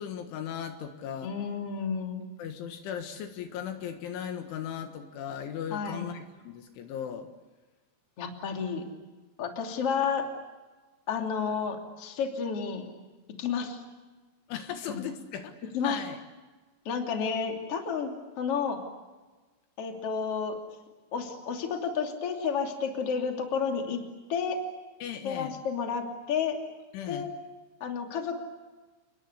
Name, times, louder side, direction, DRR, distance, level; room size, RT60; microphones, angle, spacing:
voice 1, 0.0-1.3 2.4-7.3 14.5-16.2 25.0-25.5 26.9-27.3, left 8 dB, 75° left, 6 dB, 3.8 m, -37 dB
voice 2, 1.2-2.2 5.7-6.0 8.2-8.8 9.4-10.2 11.1-12.9 13.4-13.8 14.9-15.0 15.7-16.0 16.8-18.1 18.4-18.8 19.8-20.6 21.1-24.0 24.3-24.6 25.2-26.6 27.1-27.3 27.8-28.4, left 6 dB, 35° left, 3 dB, 3.1 m, -31 dB
29.5 x 22.0 x 8.2 m, 1.3 s
omnidirectional pair, 5.9 m